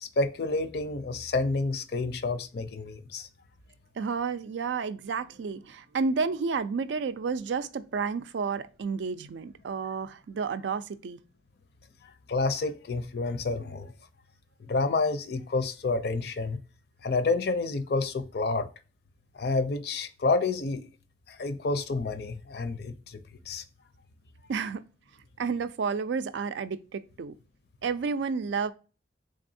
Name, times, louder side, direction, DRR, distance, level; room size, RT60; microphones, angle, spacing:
voice 1, 0.0-3.3 12.3-13.9 14.6-16.6 17.0-18.7 19.3-20.9 21.3-23.2 23.5-23.6, left 3 dB, 60° left, 0.5 m, -29 dB
voice 2, 4.0-11.2 24.5-24.8 25.4-27.3 27.8-28.7, right 5 dB, 85° right, 0.4 m, -31 dB
3.8 x 3.4 x 2.6 m
head